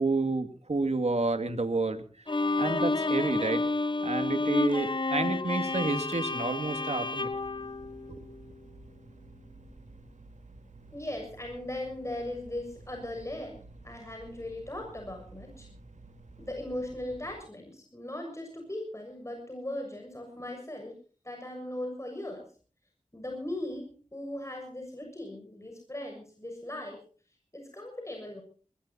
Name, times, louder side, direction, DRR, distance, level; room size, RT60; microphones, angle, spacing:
voice 1, 0.0-2.0 2.6-3.6 4.0-7.3 8.1-8.2, right 3 dB, 60° right, 7 dB, 2.3 m, -29 dB
Bowed string instrument, 2.3-8.5, left 2 dB, 40° left, 1.2 m, -30 dB
sound 1, 7.2-17.4, right 2 dB, 80° right, 3.8 m, -52 dB
voice 2, 10.9-15.7 16.4-20.9 21.2-22.4 23.1-27.0 27.5-28.4, left 1 dB, 25° left, 2 dB, 6.9 m, -38 dB
22.5 x 20.0 x 2.8 m, 0.40 s
wide cardioid pair, 50°, 12 cm